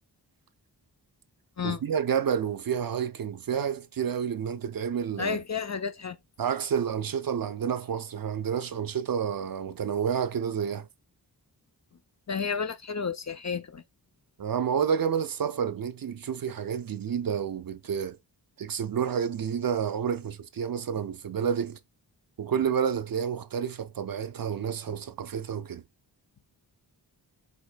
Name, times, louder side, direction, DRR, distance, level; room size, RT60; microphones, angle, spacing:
voice 1, 1.6-5.4 6.4-10.9 14.4-18.2 18.6-21.8 22.4-25.8, right 7 dB, 55° right, 0.5 m, -29 dB
voice 2, 5.2-6.2 12.3-13.8, left 6 dB, 40° left, 0.5 m, -31 dB
4.8 x 3.1 x 2.2 m
wide cardioid pair, 50°, 42 cm